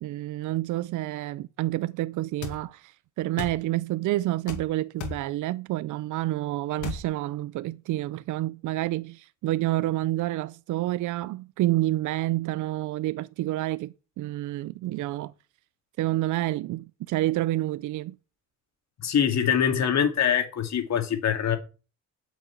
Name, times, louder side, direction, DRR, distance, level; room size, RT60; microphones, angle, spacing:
voice 1, 0.0-15.3 16.0-18.2, right 16 dB, 80° right, 0.5 m, -29 dB
sound 1, 2.4-2.6 3.4-3.6 4.5-4.7 5.0-5.2 6.8-7.1, left 7 dB, 80° left, 2.5 m, -34 dB
voice 2, 19.0-21.6, left 8 dB, 60° left, 2.5 m, -24 dB
9.0 x 6.2 x 8.3 m
cardioid pair, 90°, 30 cm